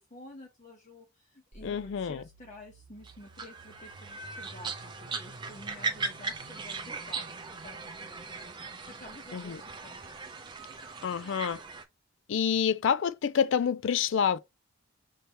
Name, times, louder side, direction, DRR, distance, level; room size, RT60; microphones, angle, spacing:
voice 1, 0.0-8.5 8.9-10.0, left 1 dB, 35° left, 0.8 m, -51 dB
sound 1, 1.5-11.5, right 2 dB, 65° right, 0.8 m, -54 dB
voice 2, 1.6-2.2 9.3-9.6 11.0-11.6 12.3-14.4, left 7 dB, 60° left, 0.3 m, -28 dB
sound 2, 3.0-11.8, right 4 dB, 20° right, 0.5 m, -39 dB
5.6 x 2.9 x 3.2 m
head